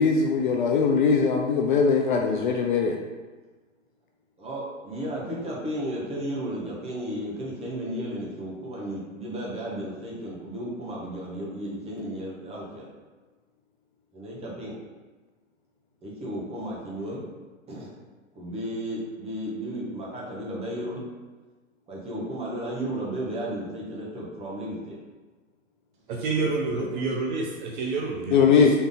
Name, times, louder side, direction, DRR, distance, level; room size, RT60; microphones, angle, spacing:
voice 1, 0.0-3.0 28.3-28.7, left 5 dB, 40° left, 2 dB, 0.4 m, -21 dB
voice 2, 4.4-12.9 14.1-14.8 16.0-17.2 17.7-17.9 18.3-21.0 21.9-25.0 26.7-27.1, right 1 dB, 15° right, -4 dB, 1.2 m, -34 dB
voice 3, 26.1-28.6, right 3 dB, 35° right, 0 dB, 0.6 m, -28 dB
4.2 x 3.4 x 3.6 m, 1.3 s
hypercardioid pair, 120°, 40 cm